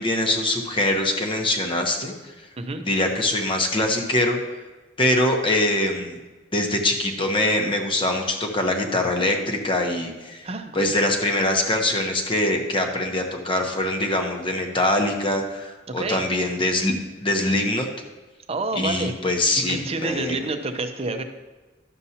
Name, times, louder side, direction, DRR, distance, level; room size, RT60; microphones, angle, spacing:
voice 1, 0.0-2.5 2.8-4.6 5.0-6.2 6.5-10.4 10.7-16.9 17.2-17.9 18.8-20.4, left 1 dB, 30° left, 3 dB, 0.9 m, -23 dB
voice 2, 10.4-10.9 15.9-16.2 18.5-19.1 19.6-21.2, right 3 dB, 35° right, 7 dB, 0.6 m, -28 dB
11.0 x 7.0 x 2.8 m, 1.2 s
head